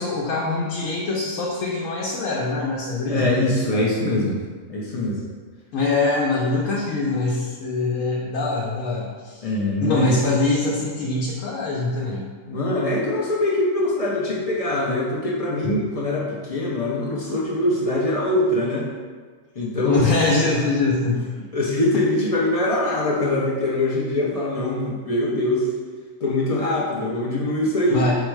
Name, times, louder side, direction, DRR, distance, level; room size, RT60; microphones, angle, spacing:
voice 1, 0.0-3.3 5.7-9.4 9.8-12.3 19.8-21.3 27.9-28.2, left 3 dB, 80° left, -4 dB, 1.0 m, -23 dB
voice 2, 3.1-4.4 4.7-5.2 9.4-10.1 12.5-18.9 19.6-20.0 20.4-20.5 21.5-25.7 26.2-28.1, left 1 dB, 55° left, -4 dB, 0.4 m, -23 dB
4.6 x 2.1 x 4.5 m, 1.5 s
omnidirectional pair, 1.4 m